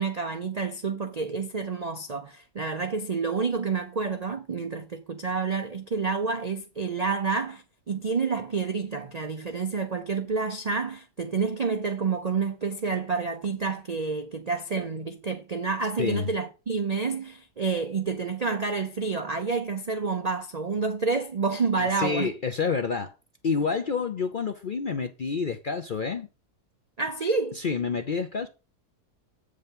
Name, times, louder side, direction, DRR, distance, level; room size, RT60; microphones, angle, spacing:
voice 1, 0.0-22.3 27.0-27.6, right 4 dB, 65° right, 0.4 m, -29 dB
voice 2, 21.8-23.1 23.4-26.3 27.6-28.5, left 5 dB, 60° left, 0.5 m, -28 dB
7.9 x 5.1 x 5.3 m
omnidirectional pair, 1.7 m